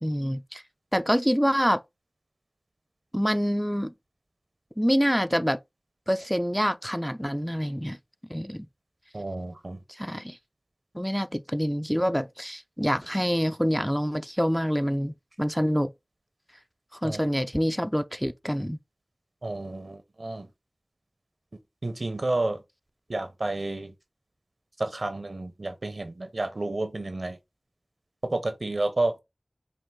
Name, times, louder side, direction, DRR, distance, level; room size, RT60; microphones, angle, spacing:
voice 1, 0.0-0.6 0.9-1.8 3.1-3.9 4.8-5.6 6.1-8.0 8.3-8.7 9.9-10.4 10.9-15.9 17.0-18.8, equal, ahead, 0.4 m, -26 dB
voice 2, 9.1-9.8 17.0-17.2 19.4-20.5 21.8-22.6 23.1-23.9 24.8-27.4 28.2-29.1, right 2 dB, 75° right, 0.8 m, -30 dB
4.5 x 2.5 x 3.7 m
wide cardioid pair, 45°, 0 cm